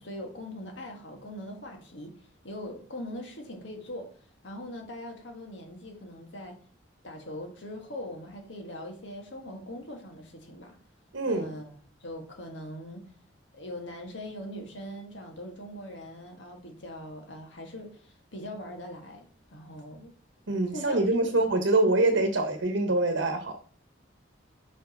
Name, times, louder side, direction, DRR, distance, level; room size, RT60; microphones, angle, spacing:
voice 1, 0.0-4.1 4.4-6.6 7.0-10.8 11.3-11.7 12.0-13.1 13.5-20.1 20.7-21.3, left 1 dB, 75° left, 1.6 m, -41 dB
voice 2, 11.1-11.5 20.5-23.5, right 2 dB, 80° right, 1.0 m, -25 dB
5.0 x 4.6 x 5.2 m
head